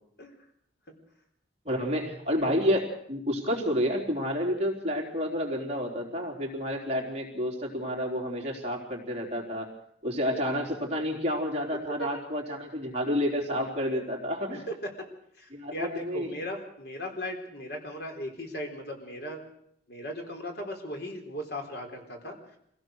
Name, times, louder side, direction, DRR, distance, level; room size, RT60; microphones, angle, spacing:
voice 1, 1.7-9.7 10.0-14.7 15.5-16.3, equal, 35° right, 1 dB, 4.0 m, -30 dB
voice 2, 14.5-15.1 15.4-19.4 19.9-22.4, left 1 dB, 60° left, 3 dB, 4.1 m, -37 dB
25.5 x 17.0 x 6.5 m, 0.70 s
head